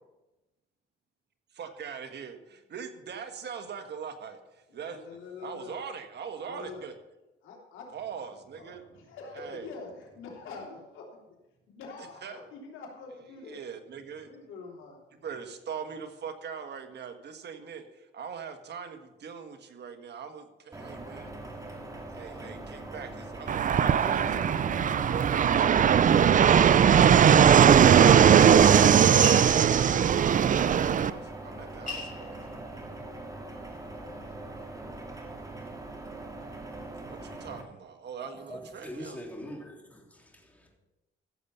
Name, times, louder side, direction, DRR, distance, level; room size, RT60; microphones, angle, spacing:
voice 1, 1.5-5.0 5.4-6.9 7.9-9.7 12.2-12.4 13.4-14.4 15.2-21.3 21.8-24.3 25.1-26.4 30.5-32.5 37.0-39.2, right 7 dB, 60° right, 1.5 m, -42 dB
voice 2, 4.7-5.8 6.4-6.9 7.4-7.9 8.5-11.4 11.7-13.6 14.2-15.0 23.8-25.1 34.0-34.6 39.3-39.6, left 4 dB, 85° left, 3.2 m, -46 dB
sound 1, 20.7-37.6, right 2 dB, 15° right, 2.1 m, -42 dB
Fixed-wing aircraft airplane, 23.5-31.1, right 8 dB, 40° right, 0.5 m, -19 dB
sound 2, 29.2-30.2 31.3-31.4 31.6-33.3 33.7-34.4, left 4 dB, 40° left, 3.7 m, -39 dB
voice 3, 38.2-40.7, equal, 5° left, 3.3 m, -43 dB
15.0 x 7.0 x 5.5 m
cardioid pair, 90°, 20 cm